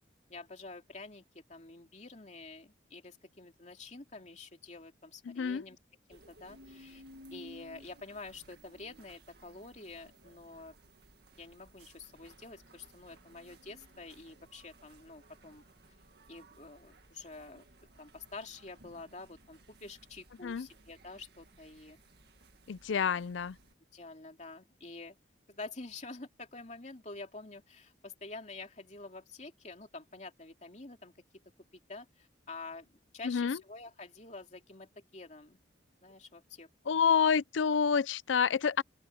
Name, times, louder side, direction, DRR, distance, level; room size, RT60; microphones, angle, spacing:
voice 1, 0.3-5.8 6.1-7.0 7.3-10.8 11.4-15.7 16.3-17.6 18.0-22.0 22.9-23.2 23.9-25.2 25.5-31.1 31.9-32.9 33.1-35.6 36.0-37.0, left 3 dB, 40° left, 2.8 m, -48 dB
voice 2, 5.3-5.6 20.4-20.7 22.7-23.6 33.2-33.6 36.9-38.8, left 6 dB, 80° left, 0.5 m, -28 dB
sound 1, 6.1-23.7, right 1 dB, 60° right, 2.0 m, -58 dB
open air
head